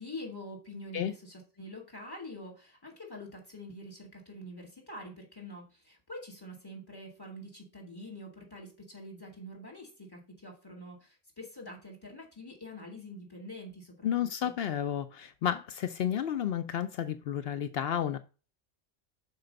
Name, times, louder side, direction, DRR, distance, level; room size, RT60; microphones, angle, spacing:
voice 1, 0.0-14.1 14.4-14.5, left 1 dB, 20° left, 2.3 m, -45 dB
voice 2, 14.0-18.2, left 9 dB, 70° left, 0.8 m, -31 dB
5.9 x 4.7 x 6.4 m
omnidirectional pair, 1.1 m